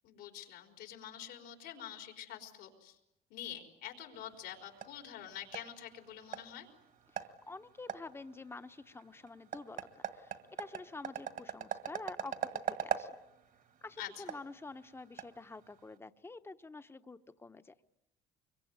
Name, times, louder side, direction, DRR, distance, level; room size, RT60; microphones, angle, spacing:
voice 1, 0.0-3.0 3.3-6.7 14.0-14.2, left 10 dB, 90° left, 4 dB, 4.5 m, -46 dB
sound 1, 4.1-16.0, right 8 dB, 55° right, 1.8 m, -43 dB
voice 2, 7.1-13.1 13.8-17.7, left 3 dB, 15° left, 11 dB, 1.0 m, -48 dB
25.5 x 23.5 x 9.5 m, 0.90 s
cardioid pair, 110°, 17 cm